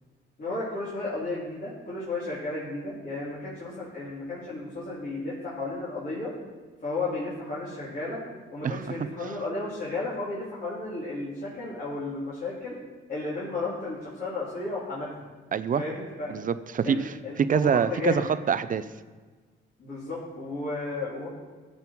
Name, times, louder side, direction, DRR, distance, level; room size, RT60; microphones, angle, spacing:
voice 1, 0.4-6.3 6.8-8.2 8.5-12.8 13.1-15.1 15.8-16.3 16.8-18.2 19.8-21.3, left 2 dB, 45° left, -9 dB, 3.9 m, -33 dB
voice 2, 8.6-9.0 15.5-15.8 16.3-18.8, right 7 dB, 45° right, 14 dB, 0.7 m, -25 dB
15.0 x 5.5 x 6.1 m, 1.4 s
cardioid pair, 90°, 20 cm